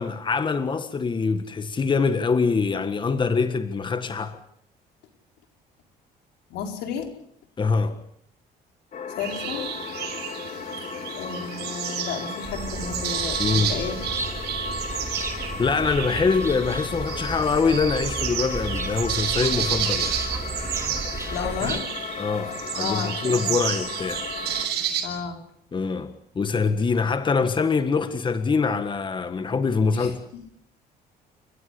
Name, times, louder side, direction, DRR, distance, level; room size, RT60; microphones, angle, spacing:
voice 1, 0.0-4.4 7.6-8.0 13.4-13.7 15.6-20.2 21.4-21.8 22.2-24.2 25.7-30.2, left 4 dB, 30° left, 1.6 m, -24 dB
voice 2, 6.5-7.1 9.1-9.7 11.1-14.0 21.3-21.8 22.8-23.6 25.0-25.4 29.9-30.1, left 6 dB, 85° left, 4.8 m, -32 dB
sound 1, 8.9-24.7, left 4 dB, 45° left, 3.6 m, -36 dB
sound 2, 9.2-25.0, right 9 dB, 80° right, 6.0 m, -31 dB
sound 3, 12.4-21.8, right 3 dB, 15° right, 3.1 m, -34 dB
29.5 x 15.5 x 8.5 m
cardioid pair, 110°, 17 cm